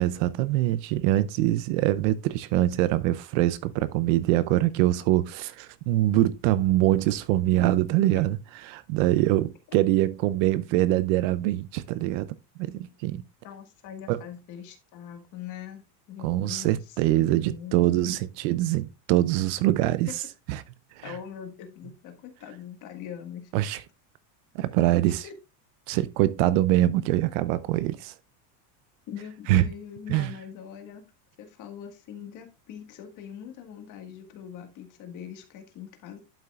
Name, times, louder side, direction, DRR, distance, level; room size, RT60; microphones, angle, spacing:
voice 1, 0.0-8.4 8.7-12.3 12.6-13.2 14.1-14.2 16.2-20.1 20.5-20.6 21.0-21.2 23.5-23.8 24.5-25.2 25.9-28.1 29.5-29.7 30.1-30.3, right 15 dB, 55° right, 0.5 m, -24 dB
voice 2, 13.4-15.8 16.1-17.9 20.1-20.2 21.0-23.5 25.2-25.4 29.1-31.0 31.4-36.2, left 9 dB, 40° left, 1.7 m, -42 dB
11.5 x 5.5 x 2.4 m
supercardioid pair, 165°, 48 cm